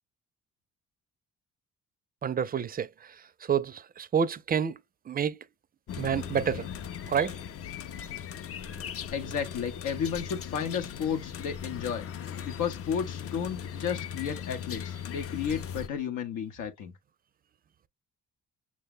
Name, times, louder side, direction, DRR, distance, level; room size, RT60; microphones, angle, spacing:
voice 1, 2.2-2.9 3.5-4.8 5.1-5.4 6.0-6.6 7.1-7.3, right 7 dB, 30° right, 0.4 m, -28 dB
sound 1, 5.9-15.9, left 8 dB, 50° left, 0.5 m, -38 dB
voice 2, 9.1-16.9, left 7 dB, 90° left, 0.8 m, -33 dB
6.1 x 2.2 x 3.5 m
cardioid pair, 90°, 30 cm